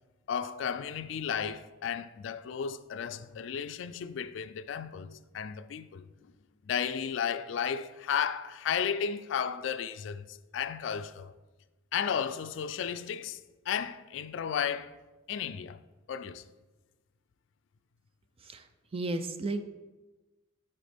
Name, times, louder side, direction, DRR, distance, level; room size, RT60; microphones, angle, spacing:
voice 1, 0.3-6.3 6.7-11.3 11.9-13.4 13.7-14.9 15.3-15.8 16.1-16.5, left 7 dB, 65° left, 0.3 m, -34 dB
voice 2, 18.9-19.6, right 2 dB, 30° right, 0.4 m, -33 dB
9.0 x 4.3 x 3.4 m
head